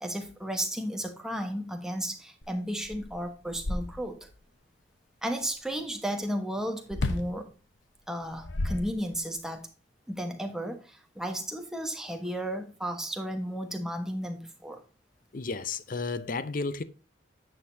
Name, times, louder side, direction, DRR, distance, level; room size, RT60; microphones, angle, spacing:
voice 1, 0.0-4.3 5.2-7.5 8.1-9.7 10.1-14.8, equal, 5° right, 1.2 m, -34 dB
sound 1, 2.4-2.5 2.8-4.3 6.9-7.4 8.2-9.4, left 2 dB, 70° left, 1.0 m, -33 dB
voice 2, 15.3-16.8, left 4 dB, 45° left, 0.6 m, -32 dB
9.8 x 6.6 x 2.7 m
head